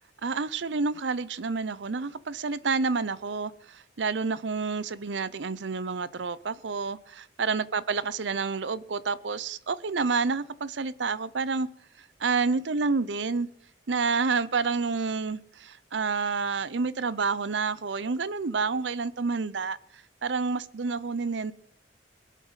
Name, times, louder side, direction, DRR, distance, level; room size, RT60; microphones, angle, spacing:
voice 1, 0.2-11.7 12.2-13.5 13.9-21.5, right 4 dB, 80° right, 0.7 m, -29 dB
22.0 x 8.3 x 5.6 m
head